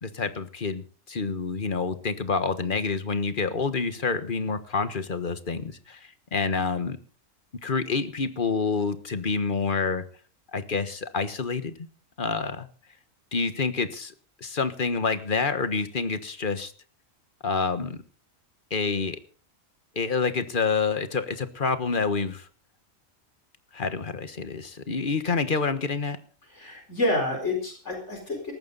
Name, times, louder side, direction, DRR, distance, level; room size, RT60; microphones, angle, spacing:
voice 1, 0.0-7.0 7.6-10.0 10.5-11.7 12.2-12.7 13.3-16.7 17.4-18.0 18.7-19.2 19.9-22.5 23.7-26.2, left 4 dB, 40° left, 12 dB, 1.5 m, -28 dB
voice 2, 26.5-28.5, left 2 dB, 60° left, 2 dB, 4.7 m, -28 dB
18.5 x 15.0 x 4.0 m, 0.38 s
omnidirectional pair, 1.3 m